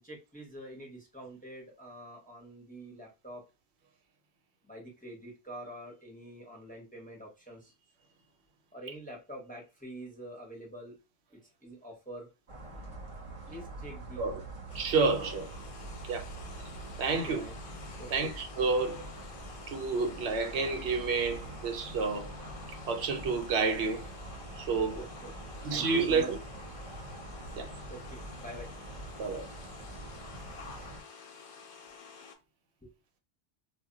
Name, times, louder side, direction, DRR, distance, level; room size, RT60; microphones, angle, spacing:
voice 1, 0.0-3.4 4.7-7.7 8.0-8.1 8.7-10.9 11.3-12.3 13.5-14.2 17.1-17.5 18.0-18.3 24.9-25.3 25.6-26.3 27.5-28.7 32.8-32.9, right 1 dB, 10° left, 0.6 m, -46 dB
sound 1, 12.5-31.0, right 2 dB, 40° right, 0.5 m, -45 dB
sound 2, 14.7-32.4, left 6 dB, 60° left, 0.6 m, -50 dB
voice 2, 14.7-15.5 16.1-16.2 17.0-17.4 18.1-19.0 19.7-22.4 22.9-24.1 24.6-25.0 25.6-26.4 27.5-27.7 29.2-29.5, right 4 dB, 80° right, 0.9 m, -29 dB
2.1 x 2.1 x 3.7 m
omnidirectional pair, 1.1 m